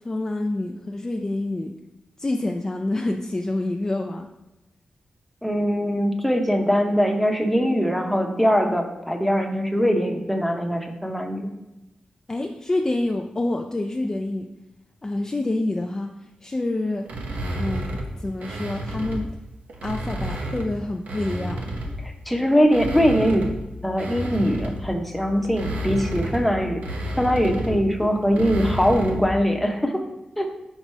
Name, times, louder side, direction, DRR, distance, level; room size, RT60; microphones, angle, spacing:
voice 1, 0.0-1.8 2.2-4.3 12.3-14.5 15.0-16.1 16.4-17.1 17.5-19.3 19.8-21.6, left 2 dB, 25° left, 3 dB, 0.4 m, -27 dB
voice 2, 5.4-11.5 22.0-23.5 23.8-30.0 30.4-30.5, equal, 5° left, 3 dB, 0.8 m, -22 dB
Creaking floor, 17.1-19.3 19.7-22.1 22.6-29.3, right 1 dB, 85° right, 0.8 m, -31 dB
4.6 x 3.9 x 5.5 m, 0.97 s
wide cardioid pair, 105°, 3 cm